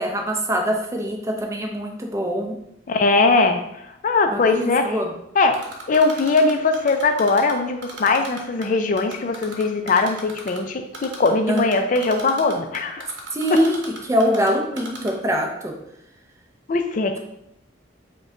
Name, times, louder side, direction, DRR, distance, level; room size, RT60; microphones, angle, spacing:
voice 1, 0.0-2.6 4.3-5.1 11.5-11.7 13.3-15.8, equal, 15° right, 1 dB, 0.6 m, -23 dB
voice 2, 2.9-3.6 4.0-4.8 5.4-5.6 5.9-13.1 16.7-17.1, left 3 dB, 45° left, 6 dB, 0.4 m, -20 dB
Typing, 5.5-7.5 7.8-8.7 9.0-10.6 10.9-11.3 11.6-14.5 14.8-15.1, right 3 dB, 70° right, 0.8 m, -36 dB
5.2 x 2.2 x 3.7 m, 0.80 s
head